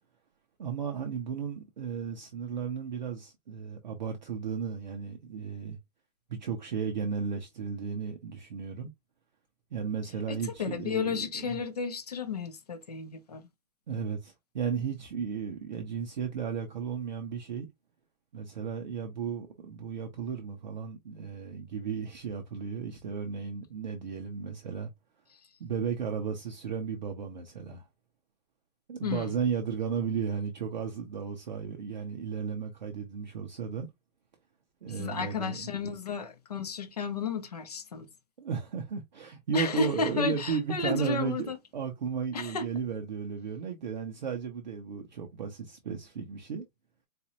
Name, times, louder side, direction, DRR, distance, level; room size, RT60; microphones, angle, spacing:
voice 1, 0.6-5.8 6.3-8.9 9.7-11.6 13.9-17.7 18.3-24.9 25.6-27.9 28.9-33.9 34.8-35.7 38.4-46.7, right 6 dB, 35° right, 0.5 m, -34 dB
voice 2, 10.3-13.4 29.0-29.3 34.9-38.1 39.5-41.6 42.3-42.7, left 5 dB, 30° left, 0.4 m, -33 dB
4.1 x 2.5 x 2.8 m
hypercardioid pair, 165°, 41 cm